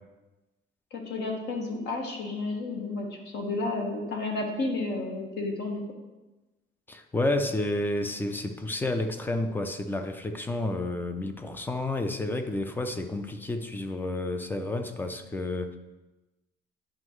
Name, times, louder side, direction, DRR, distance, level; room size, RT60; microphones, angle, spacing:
voice 1, 0.9-3.1 3.3-5.8, left 2 dB, 60° left, 1 dB, 1.4 m, -31 dB
voice 2, 6.9-15.8, left 2 dB, 10° left, 7 dB, 0.4 m, -30 dB
9.6 x 5.3 x 3.1 m, 1.1 s
cardioid pair, 170°, 20 cm